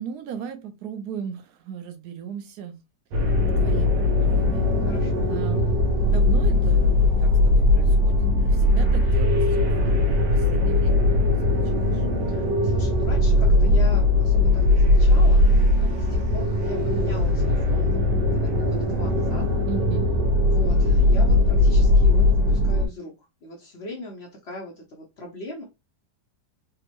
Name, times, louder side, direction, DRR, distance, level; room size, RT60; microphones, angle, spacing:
voice 1, 0.0-2.8 3.6-5.6 5.9-12.1 19.6-20.1, right 7 dB, 70° right, 1.1 m, -37 dB
sound 1, 3.1-22.9, left 2 dB, 85° right, 1.4 m, -19 dB
voice 2, 4.9-5.4 12.3-19.5 20.5-23.1 23.4-25.6, left 1 dB, 70° left, 0.6 m, -39 dB
3.5 x 2.1 x 2.9 m
omnidirectional pair, 2.0 m